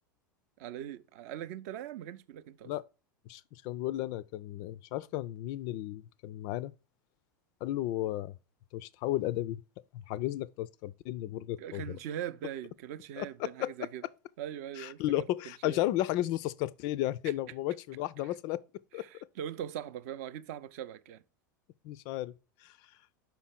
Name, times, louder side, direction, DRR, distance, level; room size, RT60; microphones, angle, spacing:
voice 1, 0.6-2.7 11.6-14.0 14.4-15.8 17.2-17.3 18.2-18.3 18.9-21.2, right 10 dB, 50° right, 0.5 m, -41 dB
voice 2, 3.3-6.7 7.6-8.3 8.7-9.6 10.1-11.8 13.2-13.7 14.8-18.6 18.9-19.0 21.8-22.3 22.6-22.7, left 15 dB, 40° left, 0.3 m, -33 dB
5.6 x 4.5 x 5.7 m
figure-of-eight pair, 85°, 10 cm